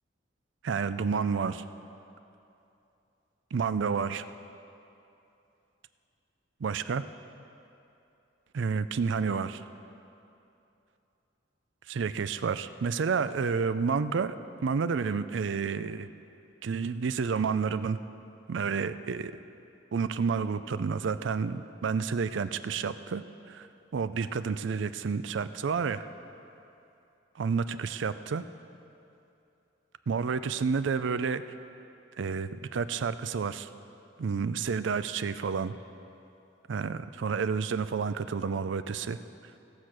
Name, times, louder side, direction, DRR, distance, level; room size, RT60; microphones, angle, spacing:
voice 1, 0.6-1.6 3.5-4.3 6.6-7.0 8.5-9.6 11.9-14.4 14.6-16.1 16.6-18.0 18.5-19.3 19.9-23.7 23.9-26.0 27.4-28.4 30.1-31.4 32.2-33.7 34.2-35.7 36.7-39.2, right 5 dB, 75° right, 13 dB, 0.4 m, -30 dB
16.5 x 6.5 x 6.0 m, 2.8 s
head